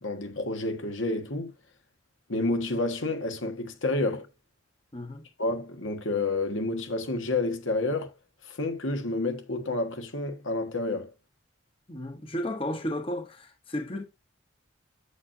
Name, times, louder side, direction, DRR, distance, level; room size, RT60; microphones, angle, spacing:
voice 1, 0.0-1.5 2.3-4.3 5.4-8.1 8.4-11.1, left 2 dB, 85° left, 1.6 m, -29 dB
voice 2, 4.9-5.2 11.9-14.0, left 1 dB, 30° left, 0.9 m, -33 dB
8.2 x 7.3 x 2.7 m
head